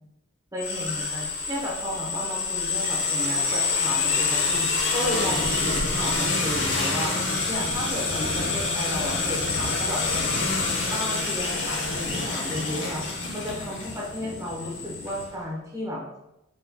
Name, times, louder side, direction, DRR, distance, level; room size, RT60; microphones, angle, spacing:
voice 1, 0.5-7.2 7.5-10.0 10.8-13.0 13.3-16.0, equal, 15° right, -3 dB, 0.9 m, -33 dB
sound 1, 0.6-15.2, left 4 dB, 55° left, 0.9 m, -27 dB
sound 2, 5.2-15.2, equal, 5° left, 1.3 m, -36 dB
4.2 x 4.0 x 2.2 m, 0.90 s
head